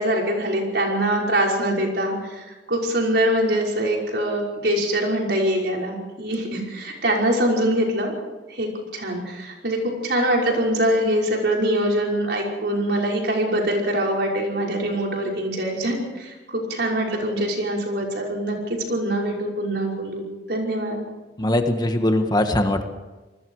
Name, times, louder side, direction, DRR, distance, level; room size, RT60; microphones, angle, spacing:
voice 1, 0.0-8.1 8.5-21.0, right 1 dB, 65° right, -1 dB, 5.7 m, -23 dB
voice 2, 21.4-22.8, left 1 dB, 25° left, 6 dB, 1.5 m, -21 dB
28.0 x 20.5 x 4.9 m, 1.2 s
head